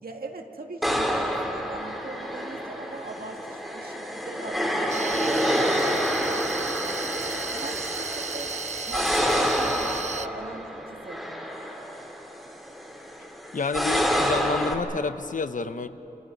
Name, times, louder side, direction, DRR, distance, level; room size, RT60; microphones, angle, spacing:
voice 1, 0.0-8.5 8.9-11.4, right 3 dB, 85° right, 2 dB, 2.2 m, -41 dB
sound 1, 0.8-14.7, equal, ahead, 2.8 m, -28 dB
sound 2, 4.9-10.3, right 5 dB, 50° right, 0.6 m, -34 dB
voice 2, 13.5-15.9, left 4 dB, 60° left, 10 dB, 0.9 m, -29 dB
28.5 x 28.0 x 5.4 m, 2.9 s
wide cardioid pair, 90°, 15 cm